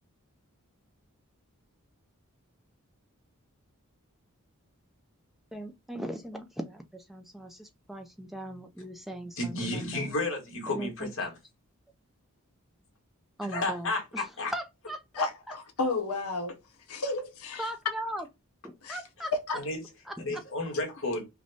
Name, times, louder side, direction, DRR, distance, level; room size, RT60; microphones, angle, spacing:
voice 1, 5.5-10.1 10.7-11.1 13.4-15.3 17.6-18.3 18.6-19.3 20.1-20.4, right 1 dB, ahead, 0.4 m, -39 dB
voice 2, 9.4-11.3 13.5-14.5 19.5-19.8 20.2-21.3, left 2 dB, 60° left, 1.5 m, -32 dB
voice 3, 15.2-16.6 16.9-17.6 18.8-19.0, left 3 dB, 80° left, 0.7 m, -32 dB
5.5 x 2.2 x 2.7 m
head